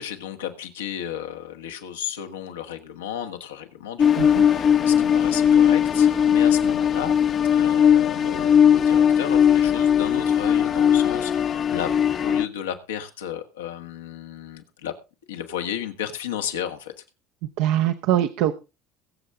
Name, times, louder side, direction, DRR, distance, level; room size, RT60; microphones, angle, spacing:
voice 1, 0.0-7.2 7.5-11.9 12.2-14.9 15.3-16.9, left 9 dB, 85° left, 1.6 m, -33 dB
sound 1, 4.0-12.5, left 8 dB, 40° left, 0.7 m, -19 dB
voice 2, 17.6-18.5, right 12 dB, 70° right, 0.8 m, -22 dB
22.0 x 7.6 x 3.6 m
hypercardioid pair, 75°, 0 cm